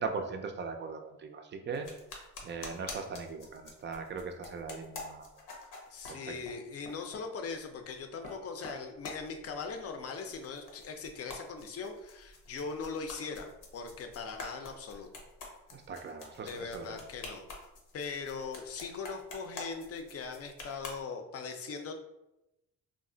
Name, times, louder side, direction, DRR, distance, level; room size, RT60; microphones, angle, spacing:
voice 1, 0.0-1.9 2.4-5.3 6.1-6.4 15.7-17.0, right 5 dB, 35° right, 6 dB, 0.4 m, -39 dB
sound 1, 1.7-6.6 6.8-7.3 7.9-8.4 8.6-9.9 10.1-21.0, left 3 dB, 85° left, 0.8 m, -47 dB
voice 2, 5.9-15.1 16.4-17.5 17.9-21.9, left 5 dB, 50° left, 5 dB, 0.5 m, -40 dB
2.4 x 2.0 x 3.7 m, 0.91 s
cardioid pair, 90°, 32 cm